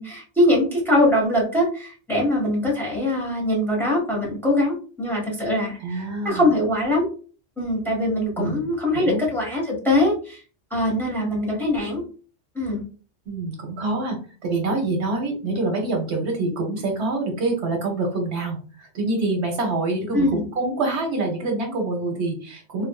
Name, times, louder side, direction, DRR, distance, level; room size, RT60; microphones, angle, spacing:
voice 1, 0.0-5.8 6.2-7.1 7.6-10.4 10.7-12.0 12.5-12.8 20.1-20.4, left 1 dB, ahead, -3 dB, 1.2 m, -22 dB
voice 2, 5.8-6.5 8.4-8.7 8.9-9.2 13.3-14.2 14.4-22.9, right 2 dB, 70° right, 2 dB, 1.1 m, -26 dB
3.6 x 2.5 x 2.2 m, 0.38 s
omnidirectional pair, 1.2 m